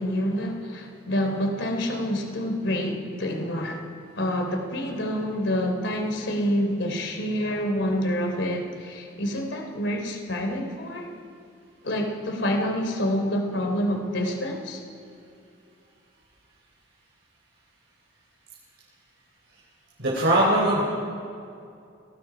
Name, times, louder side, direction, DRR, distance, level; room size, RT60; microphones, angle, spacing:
voice 1, 0.0-3.8 4.1-11.1 11.8-14.8, equal, 70° left, 3 dB, 3.5 m, -27 dB
voice 2, 20.0-20.8, right 1 dB, 60° right, -5 dB, 3.8 m, -20 dB
30.0 x 19.0 x 5.1 m, 2.5 s
head